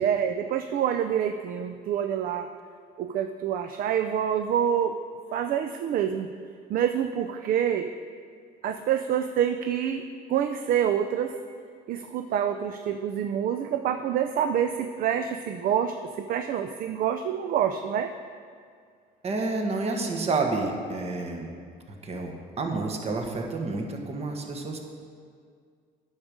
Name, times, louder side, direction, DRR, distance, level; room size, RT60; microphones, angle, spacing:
voice 1, 0.0-2.5 3.0-5.0 5.3-6.3 6.7-7.9 8.6-11.4 11.9-18.1, right 9 dB, 60° right, 8 dB, 0.4 m, -27 dB
voice 2, 19.2-21.5 22.0-24.8, right 3 dB, 40° right, 2 dB, 1.3 m, -29 dB
9.6 x 6.4 x 5.1 m, 2.1 s
cardioid pair, 110°, 17 cm